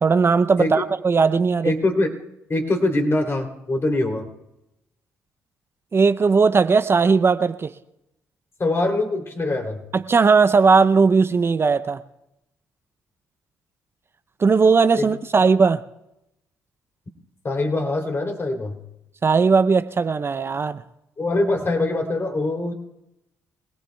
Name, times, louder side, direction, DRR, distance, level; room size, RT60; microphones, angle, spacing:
voice 1, 0.0-1.7 5.9-7.7 9.9-12.0 14.4-15.8 19.2-20.8, right 5 dB, 35° right, 11 dB, 0.5 m, -18 dB
voice 2, 1.6-2.1 2.5-4.3 8.6-9.8 15.0-15.1 17.4-18.8 21.2-22.7, left 2 dB, 35° left, 2 dB, 3.0 m, -23 dB
24.5 x 18.0 x 2.3 m, 0.88 s
hypercardioid pair, 50°, 7 cm